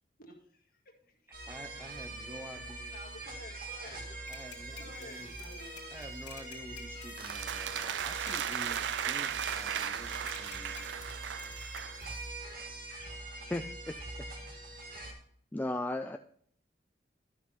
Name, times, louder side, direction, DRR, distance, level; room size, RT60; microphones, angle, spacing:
voice 1, 0.2-0.7 1.1-1.2 2.9-4.3 4.8-5.9, left 1 dB, 55° left, 2 dB, 1.8 m, -51 dB
sound 1, 1.3-15.1, right 2 dB, 55° right, 2.0 m, -43 dB
voice 2, 1.5-3.0 3.9-4.0 4.3-5.5 5.9-10.9, right 1 dB, 15° right, 6 dB, 0.8 m, -49 dB
sound 2, 4.3-12.3, left 8 dB, 85° left, 2.4 m, -53 dB
sound 3, 7.2-12.0, right 9 dB, 75° right, 0.4 m, -36 dB
voice 3, 13.5-14.0 15.5-16.2, left 1 dB, 10° left, 6 dB, 0.3 m, -34 dB
12.0 x 6.2 x 4.0 m, 0.62 s
head